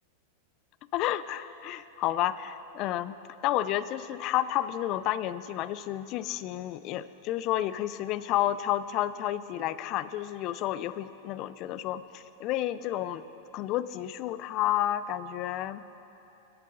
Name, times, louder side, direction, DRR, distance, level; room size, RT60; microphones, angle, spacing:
voice 1, 0.9-3.1 3.4-13.2 13.5-15.8, left 13 dB, 45° left, 14 dB, 0.4 m, -31 dB
21.0 x 8.8 x 3.8 m, 3.0 s
supercardioid pair, 130°, 0 cm